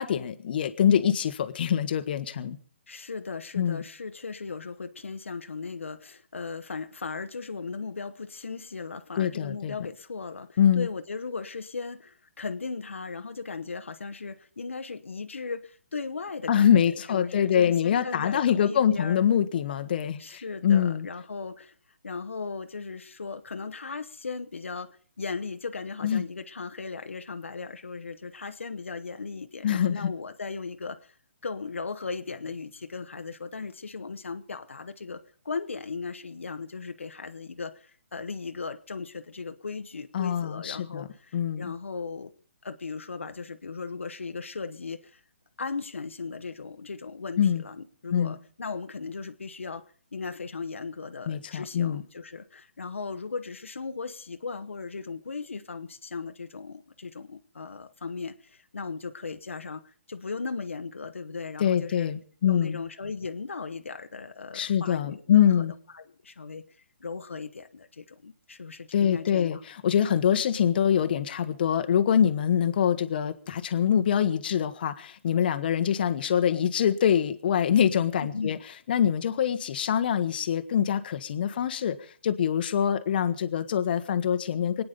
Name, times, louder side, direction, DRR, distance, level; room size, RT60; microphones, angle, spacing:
voice 1, 0.0-2.6 3.6-3.8 9.2-9.7 10.6-10.9 16.5-21.1 26.0-26.2 29.6-30.1 40.1-41.1 41.3-41.6 47.4-47.6 48.1-48.3 51.3-52.0 61.6-62.8 64.5-65.7 68.9-78.6 78.9-84.8, left 9 dB, 50° left, 9 dB, 1.3 m, -24 dB
voice 2, 2.9-19.2 20.2-21.7 22.0-31.1 31.4-35.2 35.4-42.3 42.6-45.2 45.6-49.8 50.1-62.1 62.4-65.6 65.9-66.6 67.0-69.6 78.2-78.6, left 4 dB, 85° left, 8 dB, 1.2 m, -37 dB
25.0 x 9.6 x 5.2 m, 0.44 s
hypercardioid pair, 145°, 7 cm